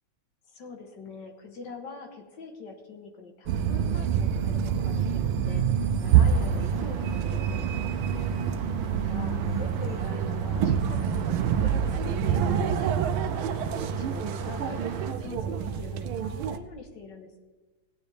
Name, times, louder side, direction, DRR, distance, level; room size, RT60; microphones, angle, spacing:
voice 1, 0.5-8.1 8.9-17.4, left 4 dB, 60° left, 4 dB, 1.8 m, -44 dB
sound 1, 3.5-16.6, right 8 dB, 90° right, 1.5 m, -26 dB
sound 2, 6.1-15.1, right 4 dB, 70° right, 1.6 m, -39 dB
16.5 x 9.5 x 3.4 m, 1.2 s
omnidirectional pair, 2.2 m